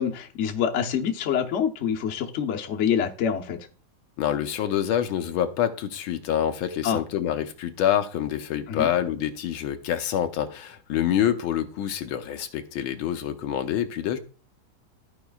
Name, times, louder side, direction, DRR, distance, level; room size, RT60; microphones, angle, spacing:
voice 1, 0.0-3.6 6.8-7.0 8.7-8.9, left 8 dB, 50° left, 0.9 m, -26 dB
voice 2, 4.2-14.2, left 10 dB, 90° left, 1.6 m, -26 dB
14.5 x 4.9 x 2.3 m
omnidirectional pair, 2.1 m